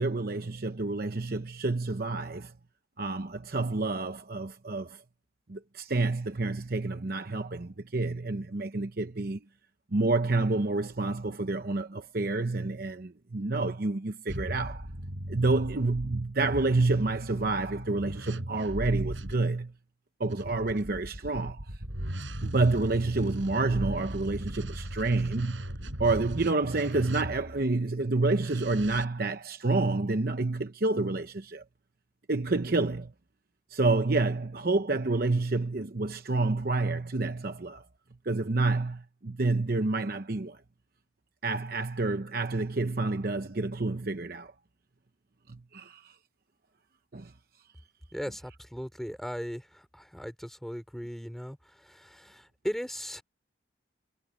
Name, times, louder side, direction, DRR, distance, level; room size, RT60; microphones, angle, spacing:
voice 1, 0.0-2.5 3.0-5.0 5.5-9.4 9.9-14.9 15.3-19.7 20.2-21.8 22.4-25.7 26.0-31.6 32.3-33.1 33.7-37.8 38.2-40.6 41.4-44.5 45.5-46.2 47.1-47.3, right 3 dB, 50° right, 0.9 m, -29 dB
sound 1, 14.3-19.4 20.3-27.7 28.4-29.1, equal, 90° right, 7.8 m, -38 dB
voice 2, 48.1-53.2, equal, ahead, 3.9 m, -38 dB
head